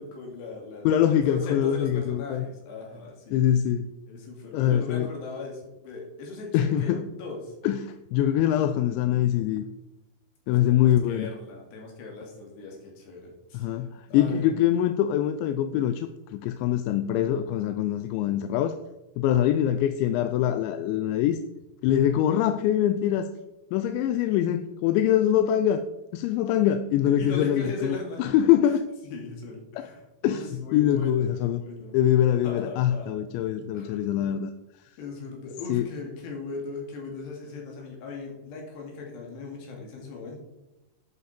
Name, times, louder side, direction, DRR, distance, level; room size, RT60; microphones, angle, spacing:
voice 1, 0.0-3.4 4.1-7.5 10.5-14.5 27.2-28.7 29.0-32.0 32.4-33.2 33.7-34.2 35.0-40.4, left 3 dB, 70° left, 0 dB, 4.3 m, -39 dB
voice 2, 0.8-2.4 3.3-3.9 4.5-5.1 6.5-7.0 7.6-9.6 10.5-11.3 13.5-18.8 19.2-21.4 21.8-23.3 23.7-25.8 26.1-28.9 29.8-29.9 30.2-30.4 30.7-31.6 31.9-34.5 35.7-35.9, left 11 dB, 90° left, 10 dB, 2.9 m, -24 dB
11.0 x 8.5 x 4.3 m, 0.98 s
omnidirectional pair, 5.1 m